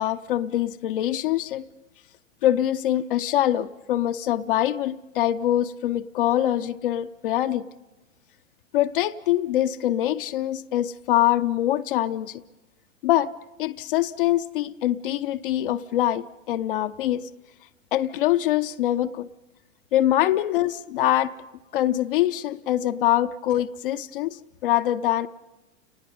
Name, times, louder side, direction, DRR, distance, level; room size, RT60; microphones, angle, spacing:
voice 1, 0.0-1.7 2.4-7.6 8.7-12.4 13.0-13.3 13.6-17.3 17.9-19.3 19.9-21.3 21.7-25.3, left 13 dB, 45° left, 0.6 m, -24 dB
30.0 x 19.5 x 5.4 m
figure-of-eight pair, 95°, 38 cm